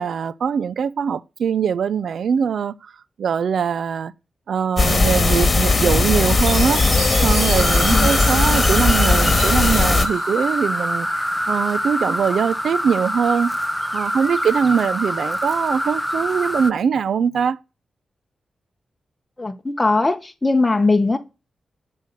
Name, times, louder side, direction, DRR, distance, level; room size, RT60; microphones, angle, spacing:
voice 1, 0.0-2.9 3.2-4.1 4.5-13.5 13.9-17.6, right 7 dB, 80° right, 0.4 m, -22 dB
sound 1, 4.8-10.1, left 3 dB, 45° left, 1.8 m, -18 dB
Chime, 6.4-10.5, right 3 dB, 55° right, 2.6 m, -30 dB
sound 2, 7.6-16.7, equal, ahead, 0.6 m, -25 dB
voice 2, 19.4-21.2, left 3 dB, 25° left, 1.1 m, -19 dB
6.5 x 5.4 x 6.6 m
cardioid pair, 55°, 0 cm